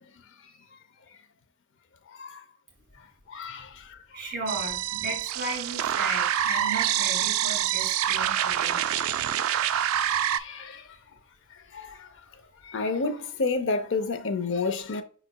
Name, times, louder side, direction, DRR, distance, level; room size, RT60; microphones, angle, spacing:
voice 1, 3.3-4.2 8.9-9.0 9.5-10.9 11.5-12.1 12.6-15.0, left 3 dB, 60° left, 0.5 m, -31 dB
voice 2, 4.1-8.8, right 2 dB, 50° right, 2.2 m, -35 dB
sound 1, 4.5-10.4, right 10 dB, 80° right, 0.3 m, -26 dB
5.5 x 4.0 x 2.2 m
head